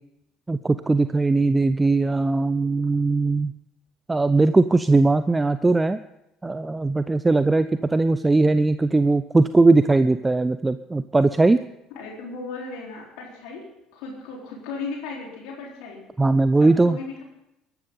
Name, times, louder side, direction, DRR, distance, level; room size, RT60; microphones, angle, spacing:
voice 1, 0.5-3.5 4.1-6.0 6.4-11.6 16.2-17.0, right 3 dB, 15° right, 13 dB, 0.6 m, -19 dB
voice 2, 11.9-16.0 16.6-17.2, left 4 dB, 65° left, -2 dB, 4.1 m, -36 dB
22.5 x 12.0 x 3.9 m, 0.87 s
figure-of-eight pair, 55°, 0 cm